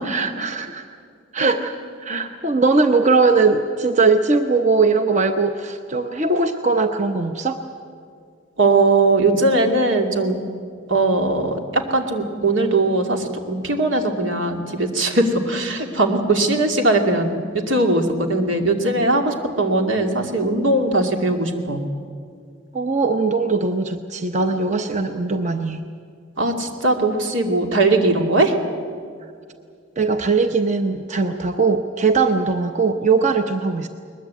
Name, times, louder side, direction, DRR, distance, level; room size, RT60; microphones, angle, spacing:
voice 1, 0.1-0.9 1.3-7.6 22.7-25.9 30.0-33.9, right 4 dB, 40° right, 7 dB, 0.9 m, -20 dB
voice 2, 8.6-10.4 10.9-21.8 26.4-28.6, right 2 dB, 85° right, 3 dB, 2.6 m, -20 dB
21.5 x 21.0 x 8.5 m, 2.2 s
head